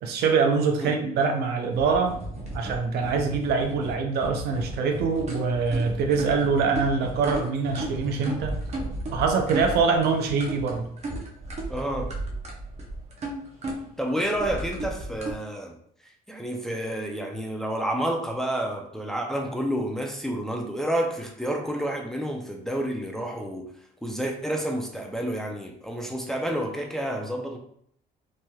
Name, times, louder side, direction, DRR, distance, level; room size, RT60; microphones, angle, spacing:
voice 1, 0.0-2.2 2.5-8.5 9.1-10.9, right 5 dB, 70° right, 4 dB, 0.5 m, -24 dB
sound 1, 1.7-15.3, right 1 dB, 40° right, 0.8 m, -34 dB
voice 2, 11.7-12.2 14.0-15.7 16.3-23.7 24.0-27.6, right 1 dB, 5° left, 1 dB, 0.5 m, -29 dB
3.2 x 2.8 x 2.3 m, 0.64 s
cardioid pair, 110°, 17 cm